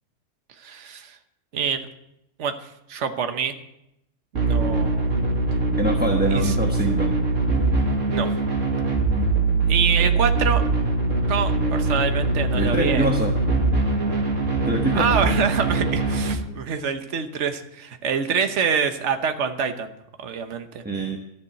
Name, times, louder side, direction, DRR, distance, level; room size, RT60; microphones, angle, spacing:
voice 1, 0.6-1.2 1.5-1.9 2.4-2.5 2.9-3.5 4.5-5.1 6.3-6.5 8.1-8.3 9.7-10.6 11.3-13.1 14.9-19.9 20.2-20.8, right 6 dB, 70° right, 7 dB, 1.3 m, -25 dB
sound 1, 4.3-16.3, right 3 dB, 90° right, 2.3 m, -22 dB
voice 2, 5.8-7.1 12.5-13.3 14.7-15.4 20.8-21.2, right 1 dB, 10° right, 2 dB, 0.9 m, -25 dB
13.0 x 7.1 x 9.5 m, 0.83 s
omnidirectional pair, 1.3 m